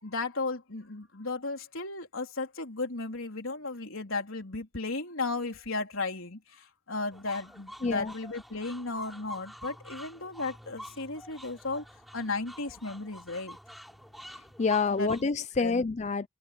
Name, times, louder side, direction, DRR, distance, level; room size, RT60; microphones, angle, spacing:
voice 1, 0.0-11.9 12.1-13.6 14.9-15.1 15.6-15.8, left 3 dB, 75° left, 3.8 m, -35 dB
sound 1, 7.1-15.2, equal, ahead, 3.6 m, -47 dB
voice 2, 7.8-8.1 14.3-16.3, left 4 dB, 35° left, 0.4 m, -28 dB
open air
head